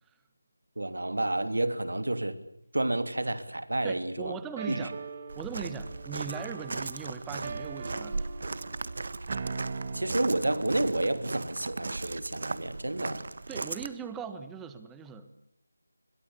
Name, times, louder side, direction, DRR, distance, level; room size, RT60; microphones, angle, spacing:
voice 1, 0.8-2.3 2.7-4.3 4.7-4.9 9.9-13.3, right 1 dB, 75° right, 10 dB, 3.0 m, -30 dB
voice 2, 3.8-4.9 5.3-8.3 13.5-15.3, right 6 dB, 5° right, 11 dB, 1.2 m, -40 dB
sound 1, 4.6-11.5, right 4 dB, 30° right, 1.8 m, -41 dB
Walk footsteps, 5.3-13.9, right 3 dB, 50° right, 1.4 m, -37 dB
27.0 x 22.0 x 8.4 m, 0.75 s
figure-of-eight pair, 165°, 0 cm